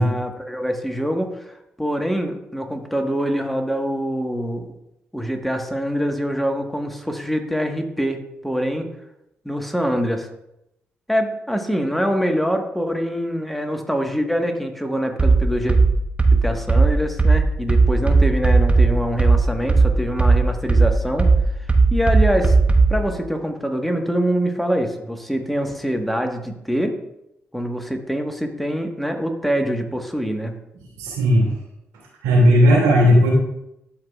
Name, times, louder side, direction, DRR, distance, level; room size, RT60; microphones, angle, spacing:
voice 1, 0.0-4.7 5.1-8.9 9.4-10.3 11.1-15.8 16.3-21.3 21.6-21.7 21.9-22.5 22.9-26.9 27.5-30.5, equal, ahead, 4 dB, 1.4 m, -24 dB
sound 1, 15.2-23.0, right 3 dB, 25° right, 1.1 m, -16 dB
voice 2, 31.0-31.5 32.2-33.3, equal, 85° right, -3 dB, 2.5 m, -15 dB
12.5 x 4.9 x 2.4 m, 0.84 s
hypercardioid pair, 45°, 6 cm